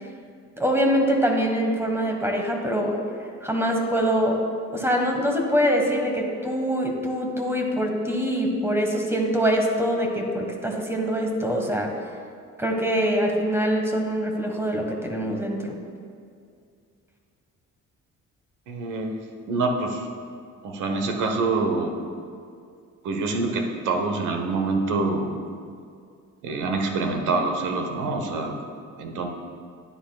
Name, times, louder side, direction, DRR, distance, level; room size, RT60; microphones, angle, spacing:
voice 1, 0.6-3.0 3.4-4.4 4.7-11.9 12.6-15.8, equal, 10° right, 1 dB, 1.3 m, -24 dB
voice 2, 18.7-20.1 20.6-22.0 23.0-25.3 26.4-28.6 29.0-29.3, right 3 dB, 80° right, 4 dB, 1.0 m, -26 dB
11.5 x 9.6 x 2.3 m, 2.3 s
cardioid pair, 90°, 30 cm